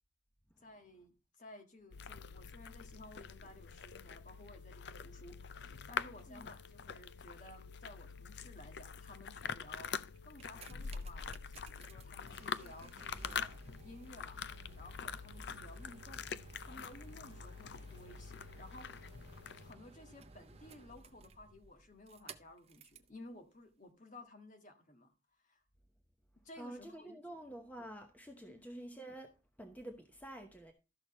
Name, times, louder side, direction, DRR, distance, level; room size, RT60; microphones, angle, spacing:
voice 1, 0.6-1.1 1.4-10.0 10.2-19.1 19.6-25.1 25.4-25.6 26.4-27.4 28.5-28.6, left 1 dB, 40° left, 1.7 m, -56 dB
sound 1, 1.9-19.7, left 6 dB, 55° left, 0.5 m, -45 dB
sound 2, 10.2-23.1 23.9-24.0, right 3 dB, 30° right, 0.7 m, -55 dB
voice 2, 26.6-30.7, right 1 dB, 10° left, 1.0 m, -49 dB
13.0 x 6.4 x 4.3 m
head